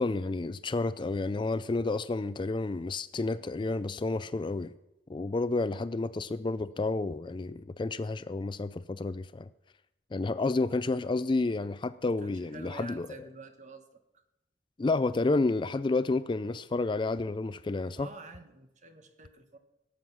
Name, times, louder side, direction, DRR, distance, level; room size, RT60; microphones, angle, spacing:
voice 1, 0.0-4.7 5.1-9.5 10.1-13.1 14.8-18.1, left 3 dB, 25° left, 0.4 m, -30 dB
voice 2, 12.2-13.8 18.0-19.6, right 2 dB, 45° right, 1.3 m, -48 dB
17.5 x 7.9 x 6.0 m
head